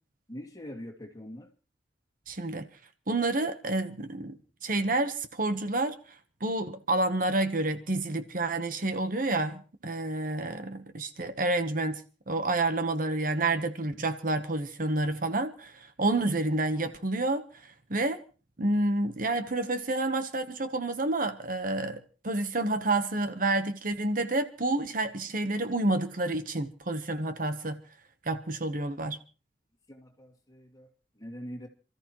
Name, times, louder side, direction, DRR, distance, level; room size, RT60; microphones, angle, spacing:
voice 1, 0.3-1.5 29.9-31.7, equal, 20° left, 2.6 m, -43 dB
voice 2, 2.3-2.7 3.1-6.0 6.4-18.2 18.6-27.8 28.2-29.2, right 2 dB, 50° right, 1.1 m, -29 dB
28.0 x 14.0 x 3.1 m
head